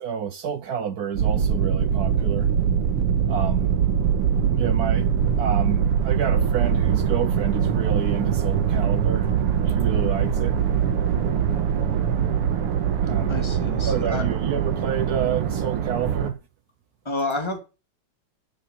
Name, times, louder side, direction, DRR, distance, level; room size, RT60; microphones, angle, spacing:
voice 1, 0.0-2.5 3.3-3.6 4.3-5.1 5.4-9.3 9.7-10.6 13.0-13.4 13.9-16.4, right 8 dB, 65° right, 0.9 m, -29 dB
sound 1, 1.2-16.3, right 8 dB, 90° right, 2.3 m, -22 dB
voice 2, 13.3-14.2 17.0-17.6, left 2 dB, 10° left, 2.5 m, -29 dB
13.0 x 6.9 x 5.4 m
omnidirectional pair, 2.4 m